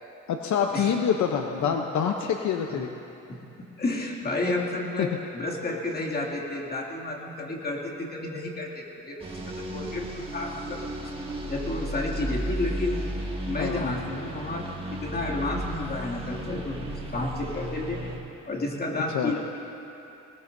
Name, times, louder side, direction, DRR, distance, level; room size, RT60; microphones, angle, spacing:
voice 1, 0.3-2.9 5.0-5.1 13.6-13.9 19.1-19.3, left 7 dB, 70° left, 4 dB, 0.8 m, -26 dB
voice 2, 3.3-11.0 11.5-13.0 13.5-18.0 18.5-19.4, left 2 dB, 30° left, -2 dB, 2.4 m, -31 dB
sound 1, 9.2-18.2, right 1 dB, 20° right, 2.0 m, -34 dB
20.0 x 19.5 x 2.7 m, 2.9 s
cardioid pair, 90°, 30 cm